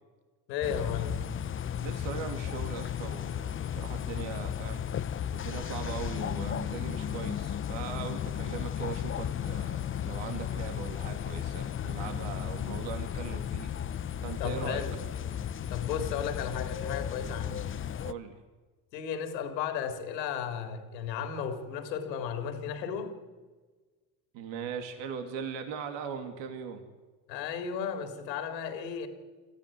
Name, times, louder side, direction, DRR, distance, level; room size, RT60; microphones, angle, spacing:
voice 1, 0.5-1.2 8.4-8.5 14.4-14.9 15.7-17.6 18.9-23.1 27.3-29.1, left 7 dB, 80° left, 3.6 m, -34 dB
sound 1, 0.6-18.1, left 9 dB, 25° left, 0.7 m, -34 dB
voice 2, 1.8-4.8 5.3-13.7 14.2-14.8 18.0-18.4 24.3-26.8, right 6 dB, 60° right, 3.1 m, -40 dB
24.5 x 14.5 x 10.0 m
hypercardioid pair, 90°, 50 cm